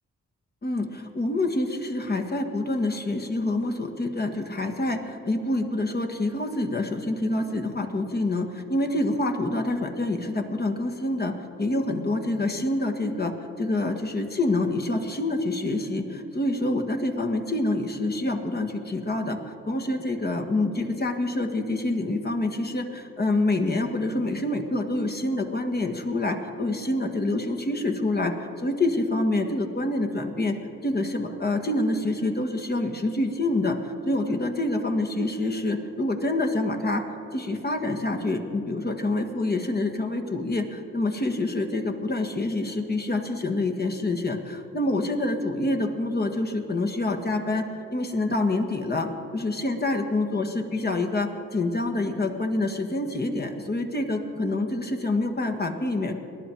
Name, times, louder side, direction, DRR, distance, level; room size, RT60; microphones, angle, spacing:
voice 1, 0.6-30.6 30.8-37.0 37.3-56.1, left 2 dB, 30° left, 4 dB, 1.6 m, -27 dB
19.0 x 11.0 x 4.6 m, 2.7 s
cardioid pair, 65°, 30 cm